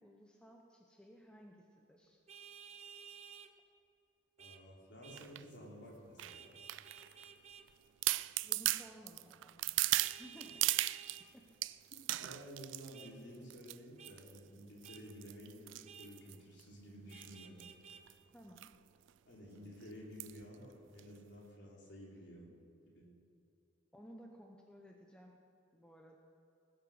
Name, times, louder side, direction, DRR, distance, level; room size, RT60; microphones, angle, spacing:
voice 1, 0.0-2.2 8.4-9.7 10.1-10.5 11.3-11.4 18.3-18.7 23.9-25.4 25.7-26.2, equal, 5° left, 1 dB, 0.9 m, -57 dB
Vehicle horn car horn honking, 2.3-3.5 4.4-4.6 5.0-5.3 6.3-7.7 10.0-11.3 12.9-13.1 14.0-14.1 14.8-15.0 15.9-16.1 17.1-18.0, right 7 dB, 35° right, 0.7 m, -54 dB
voice 2, 4.4-6.6 12.2-17.6 19.3-22.5 22.9-23.0, equal, 65° left, -4 dB, 3.5 m, -52 dB
sound 1, 5.2-5.4 6.2-7.2 7.7-7.8 8.0-11.2 11.6-13.0 13.5-13.8 14.0-14.4 14.8-16.6 17.1-17.3 17.6-17.7 17.9-18.1 18.6-18.7 19.1-19.2 20.2-20.4 21.0-21.1, right 17 dB, 75° right, 0.3 m, -37 dB
19.5 x 7.9 x 6.4 m, 2.7 s
head